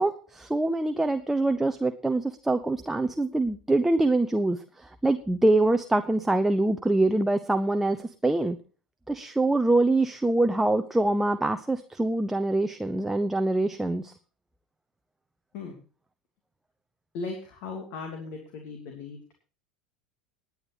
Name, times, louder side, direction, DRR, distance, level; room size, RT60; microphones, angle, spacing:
voice 1, 0.0-8.6 9.1-14.1, right 2 dB, 5° right, 7 dB, 0.9 m, -24 dB
voice 2, 17.1-19.4, left 4 dB, 50° left, 3 dB, 2.9 m, -37 dB
20.0 x 9.6 x 3.1 m, 0.38 s
figure-of-eight pair, 80°, 4 cm